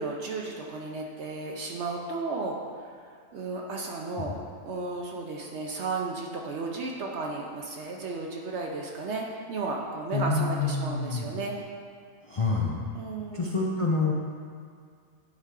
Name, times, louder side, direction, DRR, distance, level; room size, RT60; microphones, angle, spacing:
voice 1, 0.0-2.9 3.3-4.3 4.7-11.5 12.9-13.5, right 3 dB, 65° right, -1 dB, 0.9 m, -34 dB
voice 2, 10.1-11.3 12.2-13.0 13.3-14.1, left 3 dB, 55° left, -3 dB, 0.3 m, -27 dB
9.9 x 4.2 x 3.7 m, 2.1 s
omnidirectional pair, 1.4 m